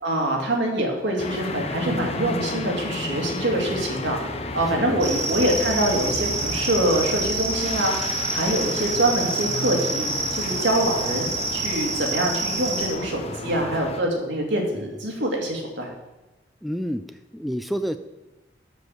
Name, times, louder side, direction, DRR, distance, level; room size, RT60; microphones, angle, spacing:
voice 1, 0.0-4.2 4.5-7.9 8.3-10.1 10.3-15.9, right 1 dB, 85° right, 0 dB, 2.4 m, -25 dB
sound 1, 1.2-14.0, left 2 dB, 35° left, 0.8 m, -33 dB
sound 2, 5.0-12.9, right 2 dB, 65° right, 2.1 m, -28 dB
voice 2, 13.3-13.7 14.7-14.9 16.6-18.0, equal, ahead, 9 dB, 0.3 m, -30 dB
8.0 x 7.0 x 6.4 m, 1.0 s
head